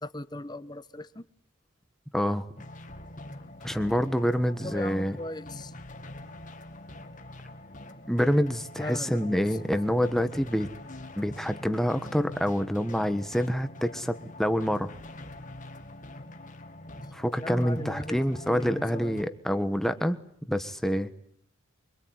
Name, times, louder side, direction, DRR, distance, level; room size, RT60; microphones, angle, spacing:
voice 1, 0.0-1.3 4.6-5.7 8.8-9.3 17.4-18.2 18.5-19.2, left 1 dB, 20° left, 13 dB, 1.1 m, -38 dB
voice 2, 2.1-2.4 3.6-5.2 8.1-10.7 11.2-14.9 17.1-20.2 20.5-21.1, equal, ahead, 10 dB, 1.4 m, -27 dB
sound 1, 2.6-19.2, left 1 dB, 40° left, 2.1 m, -45 dB
25.0 x 24.0 x 9.5 m, 0.68 s
head